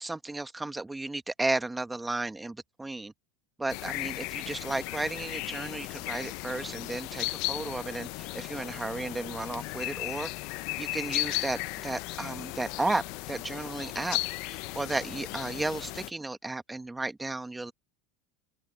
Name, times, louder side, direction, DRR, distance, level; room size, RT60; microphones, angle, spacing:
voice 1, 0.0-3.1 3.6-10.3 10.8-13.0 13.3-14.2 14.4-17.7, right 2 dB, 5° right, 1.1 m, -34 dB
sound 1, 3.7-16.1, left 22 dB, 55° left, 0.5 m, -36 dB
open air
supercardioid pair, 160°, 0 cm